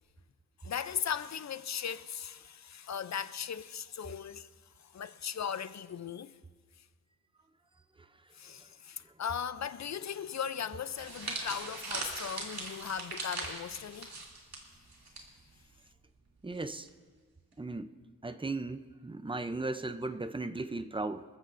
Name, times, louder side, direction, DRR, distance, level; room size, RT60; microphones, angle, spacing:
voice 1, 0.6-4.5 4.9-6.4 8.4-14.3, left 8 dB, 50° left, 0.5 m, -38 dB
sound 1, 11.0-15.2 15.5-15.7 16.6-16.9, right 3 dB, 80° right, 2.7 m, -40 dB
voice 2, 16.4-16.9 17.6-17.9 18.2-21.2, right 2 dB, 15° right, 0.4 m, -36 dB
26.5 x 14.5 x 2.6 m
wide cardioid pair, 145°, 36 cm